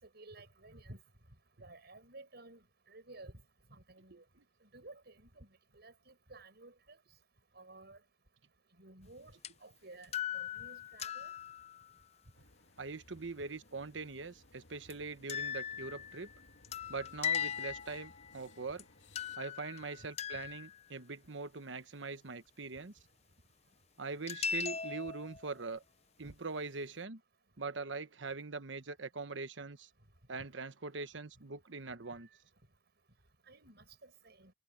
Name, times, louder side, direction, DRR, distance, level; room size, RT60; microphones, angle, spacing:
voice 1, 0.1-1.0 1.6-3.4 3.7-4.2 4.6-5.5 5.7-7.0 7.5-8.0 8.8-9.3 9.6-11.3 26.2-26.3 33.5-34.5, right 2 dB, 60° right, 6.7 m, -54 dB
sound 1, 9.4-9.5 10.0-11.9 14.9-15.0 15.3-18.4 18.8-18.9 19.2-20.8 24.3-25.5, left 8 dB, 35° left, 0.6 m, -39 dB
sound 2, 12.3-19.4, left 2 dB, 75° left, 2.7 m, -62 dB
voice 2, 12.8-16.3 16.9-18.8 19.4-22.9 24.0-25.8 26.2-27.2 27.6-29.9 30.3-32.3, right 4 dB, 85° right, 1.2 m, -42 dB
head